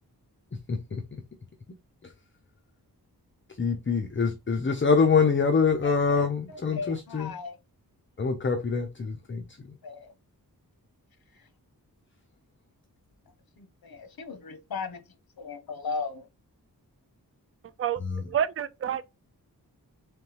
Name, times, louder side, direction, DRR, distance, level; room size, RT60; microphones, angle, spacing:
voice 1, 0.7-1.0 3.6-7.3 8.2-9.4 18.0-18.2, left 5 dB, 30° left, 0.7 m, -25 dB
voice 2, 5.8-7.6 9.8-10.1 11.3-11.5 13.6-15.0 15.4-16.3, left 4 dB, 70° left, 0.9 m, -37 dB
voice 3, 18.3-19.1, right 9 dB, 40° right, 0.4 m, -28 dB
3.8 x 3.5 x 2.9 m
wide cardioid pair, 70°, 37 cm